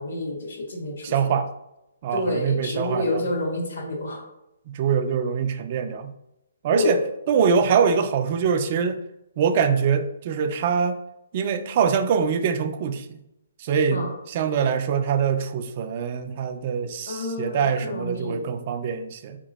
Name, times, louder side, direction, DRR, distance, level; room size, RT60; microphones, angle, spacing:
voice 1, 0.0-1.1 2.1-4.2 6.7-7.0 13.9-14.1 17.1-18.5, left 1 dB, 60° left, -1 dB, 1.5 m, -28 dB
voice 2, 1.0-1.5 2.0-3.2 4.7-6.1 6.6-7.0 7.3-9.0 9.4-11.0 11.3-13.2 13.6-19.4, right 6 dB, 30° right, 8 dB, 0.3 m, -24 dB
4.1 x 2.9 x 3.9 m, 0.87 s
hypercardioid pair, 175°, 0 cm